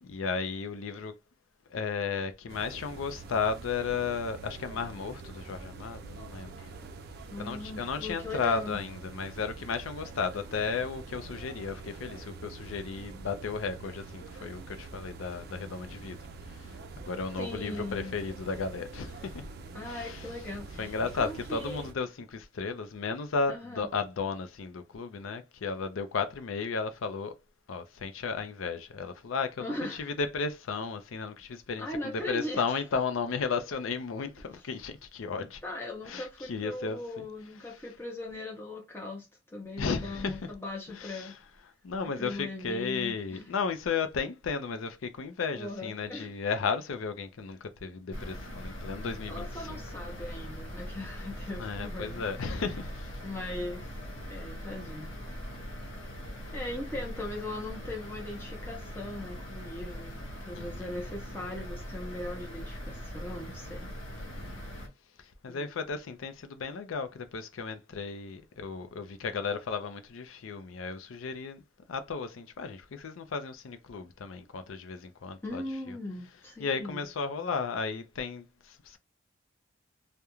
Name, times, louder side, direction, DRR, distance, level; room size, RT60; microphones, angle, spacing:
voice 1, 0.0-1.2 1.7-6.7 7.4-16.2 16.5-19.5 19.8-20.2 20.8-27.4 27.7-35.6 36.1-37.0 39.8-40.5 40.9-41.4 41.8-49.8 51.6-53.1 60.5-61.0 64.2-64.6 65.2-71.6 71.9-75.6 75.9-76.0 76.6-79.0, left 5 dB, 85° left, 0.5 m, -34 dB
sound 1, 2.5-21.9, right 3 dB, 50° right, 0.3 m, -45 dB
voice 2, 7.3-8.8 17.4-18.2 19.7-21.9 23.5-23.9 29.6-30.1 31.8-32.6 35.6-41.3 42.0-43.4 45.5-46.3 49.3-52.5 53.2-53.9 54.3-55.3 56.5-63.9 65.5-65.7 75.4-77.1, left 1 dB, 10° left, 0.6 m, -39 dB
sound 2, 48.1-64.9, equal, 65° left, 1.0 m, -41 dB
2.4 x 2.1 x 2.9 m
head